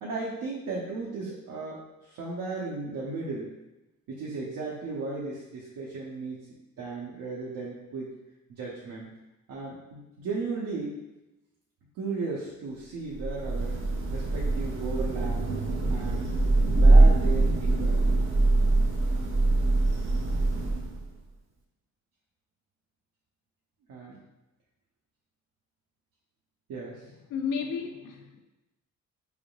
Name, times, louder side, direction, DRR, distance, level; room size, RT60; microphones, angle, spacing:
voice 1, 0.0-1.8 2.1-3.5 4.1-6.5 6.8-8.1 8.5-9.1 9.5-10.9 12.0-13.8 14.1-15.4 15.9-16.3 16.8-18.0 23.9-24.2 26.7-27.0, right 3 dB, 85° right, -5 dB, 0.9 m, -35 dB
Thunder / Rain, 13.1-21.1, right 2 dB, 40° right, 0.8 m, -23 dB
voice 2, 27.3-28.4, left 6 dB, 85° left, 4 dB, 0.6 m, -32 dB
4.8 x 3.5 x 2.3 m, 0.98 s
cardioid pair, 120°, 32 cm